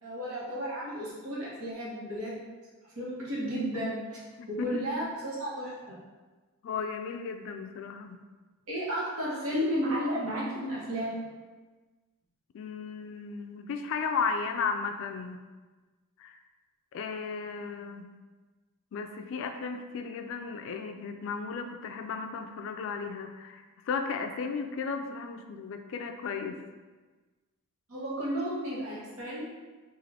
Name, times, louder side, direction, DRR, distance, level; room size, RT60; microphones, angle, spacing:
voice 1, 0.0-2.3 3.0-4.0 4.5-6.0 8.7-11.2 27.9-29.4, equal, 65° right, -6 dB, 1.1 m, -33 dB
voice 2, 6.6-8.2 12.5-15.4 16.2-16.4 16.9-18.1 18.9-26.6, left 5 dB, 60° left, 6 dB, 0.3 m, -35 dB
3.7 x 2.5 x 3.3 m, 1.3 s
head